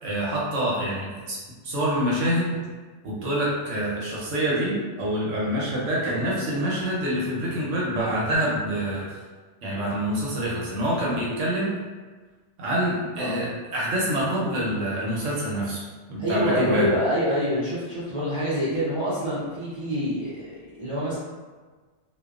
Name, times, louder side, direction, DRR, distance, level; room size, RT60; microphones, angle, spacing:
voice 1, 0.0-1.4 1.6-2.6 3.0-9.1 9.6-11.7 12.6-15.8 16.1-16.9, right 1 dB, 75° right, -5 dB, 1.1 m, -26 dB
voice 2, 16.2-21.2, equal, 40° right, -11 dB, 0.4 m, -26 dB
2.8 x 2.2 x 2.3 m, 1.4 s
omnidirectional pair, 1.3 m